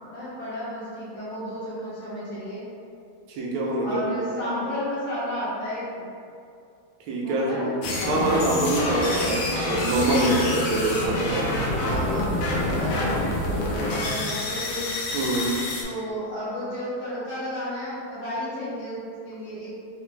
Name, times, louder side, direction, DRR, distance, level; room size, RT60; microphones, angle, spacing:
voice 1, 0.0-2.6 3.8-6.1 7.2-8.0 10.0-10.6 10.9-11.0 11.7-14.8 15.8-19.0 19.2-19.7, equal, 55° left, -10 dB, 1.3 m, -33 dB
voice 2, 3.3-4.3 7.1-7.7 8.0-11.5 15.1-15.6, right 1 dB, 80° right, -3 dB, 1.4 m, -25 dB
sound 1, 7.8-15.8, left 1 dB, 80° left, 1.4 m, -27 dB
4.0 x 2.1 x 3.1 m, 2.4 s
omnidirectional pair, 2.3 m